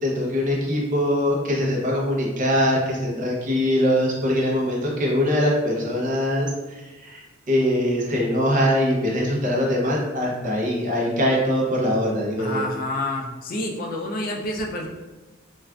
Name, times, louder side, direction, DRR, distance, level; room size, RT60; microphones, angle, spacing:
voice 1, 0.0-12.7, equal, 40° right, -2 dB, 0.6 m, -22 dB
voice 2, 12.4-14.9, left 1 dB, 45° left, 0 dB, 0.4 m, -28 dB
3.4 x 2.4 x 2.2 m, 1.2 s
head